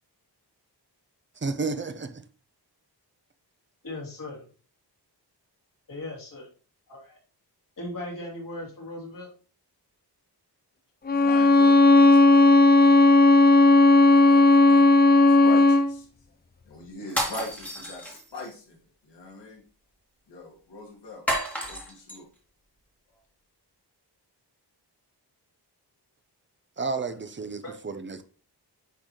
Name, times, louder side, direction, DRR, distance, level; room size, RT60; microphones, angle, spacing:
voice 1, 1.4-2.2 26.8-28.2, right 4 dB, 30° right, 0.6 m, -31 dB
voice 2, 3.8-4.5 5.9-6.5 6.9-7.2 7.8-9.3 27.1-27.2 27.6-27.7, left 1 dB, 50° left, 3.3 m, -38 dB
voice 3, 11.1-13.1 14.1-14.9 15.3-16.1 16.7-18.8 19.0-19.6 20.3-21.2 21.7-22.3, left 2 dB, 80° left, 1.9 m, -42 dB
Bowed string instrument, 11.1-15.9, left 2 dB, 25° left, 0.4 m, -16 dB
sound 1, 17.1-18.5 21.3-22.2, equal, 5° left, 2.1 m, -31 dB
10.0 x 4.0 x 3.1 m
wide cardioid pair, 115°, 42 cm